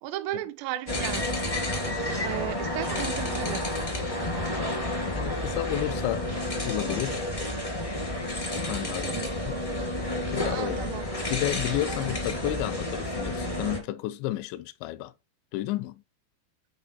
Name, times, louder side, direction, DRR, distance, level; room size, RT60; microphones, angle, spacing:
voice 1, 0.0-1.4 2.2-3.7 8.9-9.3 10.5-11.0, right 14 dB, 80° right, 2.6 m, -35 dB
sound 1, 0.9-13.8, left 1 dB, 35° left, 0.5 m, -30 dB
voice 2, 5.1-6.3 6.6-7.2 8.5-9.2 9.5-9.6 10.3-10.8 11.3-15.1 15.5-16.0, left 14 dB, 85° left, 2.8 m, -31 dB
8.0 x 4.5 x 4.1 m
omnidirectional pair, 5.2 m